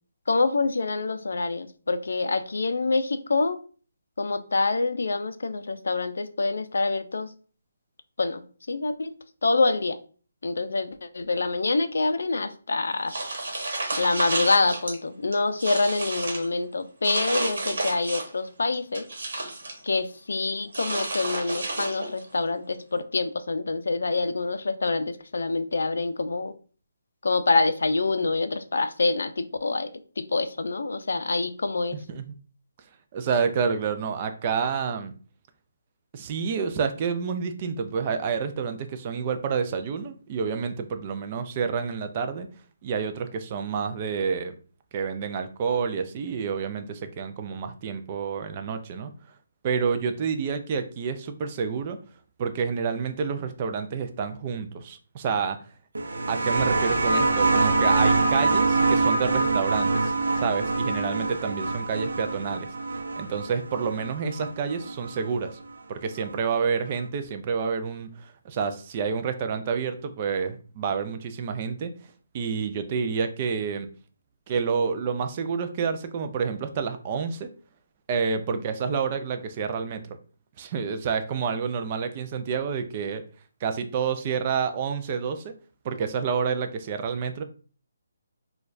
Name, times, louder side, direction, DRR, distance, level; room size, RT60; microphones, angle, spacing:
voice 1, 0.3-3.6 4.2-7.3 8.2-9.1 9.4-10.0 10.4-13.1 14.0-19.1 19.8-26.5 27.2-29.9 30.2-32.0, left 3 dB, 75° left, 10 dB, 0.4 m, -26 dB
sound 1, 13.1-15.0 15.3-16.5 17.0-18.4 18.7-19.8 20.7-22.3, right 2 dB, 60° right, 1.1 m, -31 dB
voice 2, 31.9-32.4 33.1-35.1 36.1-42.5 42.8-44.6 44.9-49.1 49.6-52.0 52.4-55.6 56.3-62.7 63.2-65.6 65.9-71.9 72.3-73.9 74.5-77.5 78.1-80.2 80.6-83.2 83.6-85.5 85.8-87.4, right 6 dB, 25° right, 7 dB, 0.3 m, -29 dB
sound 2, 56.0-65.2 66.4-66.5, right 3 dB, 80° right, 0.6 m, -24 dB
4.3 x 2.3 x 2.5 m, 0.40 s
hypercardioid pair, 170°, 0 cm